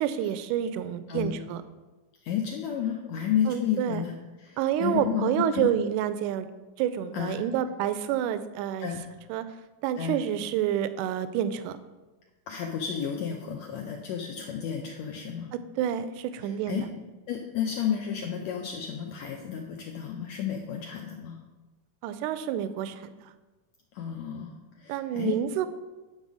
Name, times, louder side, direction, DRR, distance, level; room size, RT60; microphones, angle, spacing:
voice 1, 0.0-1.6 3.5-4.0 4.6-6.5 6.8-8.9 9.3-9.4 9.8-11.8 15.8-16.9 22.0-23.0 24.9-25.7, right 10 dB, 80° right, 12 dB, 1.8 m, -28 dB
voice 2, 2.2-5.7 7.1-7.4 8.8-9.0 10.0-10.2 12.5-15.5 16.4-16.9 17.3-21.4 23.9-25.3, left 8 dB, 90° left, 1 dB, 1.5 m, -32 dB
9.7 x 3.9 x 6.1 m, 1.2 s
omnidirectional pair, 3.9 m